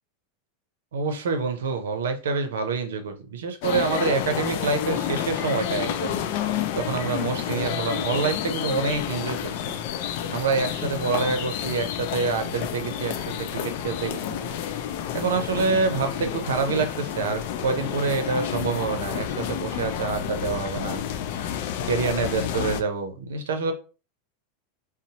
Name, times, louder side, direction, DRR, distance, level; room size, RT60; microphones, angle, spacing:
voice 1, 0.9-6.2 6.7-9.8 10.3-13.1 13.4-14.4 15.1-21.0 21.8-23.7, right 4 dB, 85° right, 6 dB, 0.6 m, -27 dB
sound 1, 3.6-22.8, left 9 dB, 65° left, 0.3 m, -30 dB
2.7 x 2.0 x 2.8 m, 0.34 s
hypercardioid pair, 115°, 0 cm